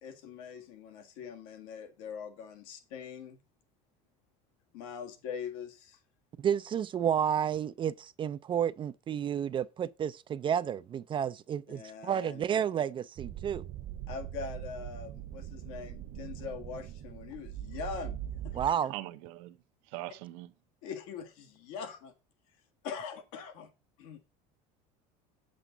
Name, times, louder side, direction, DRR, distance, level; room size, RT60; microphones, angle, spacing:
voice 1, 0.0-3.4 4.7-6.0 11.7-12.4 14.1-18.8 20.8-22.1 22.8-23.7 24.0-24.2, left 6 dB, 80° left, 1.8 m, -42 dB
voice 2, 6.4-13.6 18.5-18.9, right 9 dB, 30° right, 0.4 m, -31 dB
sound 1, 13.2-18.7, right 12 dB, 60° right, 1.2 m, -41 dB
voice 3, 18.9-19.6 19.9-20.5, right 17 dB, 75° right, 0.8 m, -41 dB
8.0 x 7.6 x 3.9 m
supercardioid pair, 120°, 17 cm